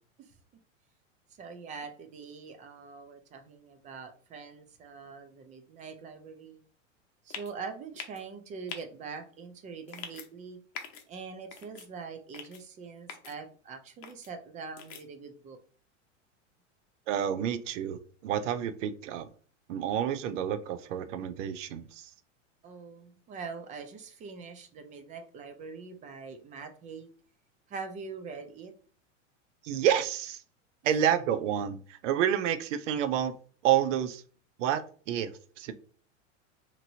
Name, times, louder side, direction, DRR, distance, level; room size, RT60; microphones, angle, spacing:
voice 1, 1.4-6.6 7.2-10.6 11.1-15.6 22.6-27.1 27.7-28.7, right 5 dB, 20° right, 7 dB, 0.3 m, -43 dB
sound 1, 7.3-7.5 8.0-8.2 8.7-8.8 9.9-10.3 10.7-11.0 11.5-11.9 12.3-12.6 13.1-13.3 14.0-14.3 14.8-15.0, left 7 dB, 50° left, 0.7 m, -42 dB
voice 2, 17.1-19.3 19.7-22.1 29.6-30.4 30.8-33.3 33.6-34.2 34.6-34.8 35.1-35.7, right 10 dB, 75° right, 12 dB, 0.5 m, -29 dB
2.9 x 2.6 x 2.7 m, 0.42 s
hypercardioid pair, 110°, 37 cm